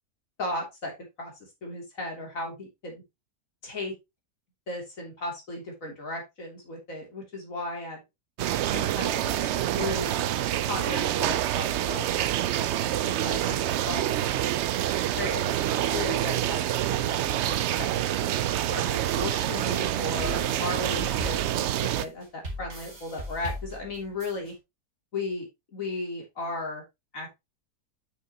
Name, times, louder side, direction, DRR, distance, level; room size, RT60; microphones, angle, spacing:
voice 1, 0.4-0.9 1.2-1.3 1.6-3.0 3.6-3.9 4.7-8.0 8.7-10.3 10.6-13.6 13.8-14.1 15.1-15.6 15.9-24.5 25.1-25.5 25.7-26.8 27.1-27.3, left 2 dB, 55° left, 0 dB, 3.4 m, -36 dB
sound 1, 8.4-22.0, right 12 dB, 75° right, 0.6 m, -27 dB
sound 2, 19.7-24.5, equal, 55° right, 3.3 m, -39 dB
8.2 x 6.5 x 3.0 m, 0.22 s
omnidirectional pair, 1.7 m